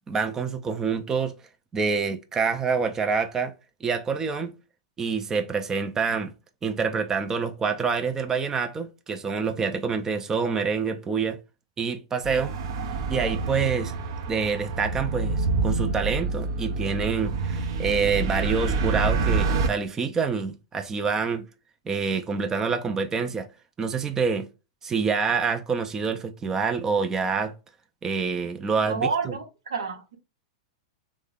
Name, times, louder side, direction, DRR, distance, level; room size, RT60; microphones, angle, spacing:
voice 1, 0.1-1.3 1.7-3.5 3.8-4.5 5.0-6.3 6.6-11.4 11.8-12.5 13.1-13.9 14.3-21.5 21.9-23.5 23.8-24.5 24.8-27.5 28.0-29.4, right 5 dB, 20° right, 0.4 m, -26 dB
sound 1, 12.2-19.7, right 4 dB, 60° right, 0.6 m, -27 dB
voice 2, 28.9-29.4 29.7-30.2, right 5 dB, 80° right, 0.8 m, -28 dB
3.2 x 2.1 x 3.5 m
hypercardioid pair, 105°, 3 cm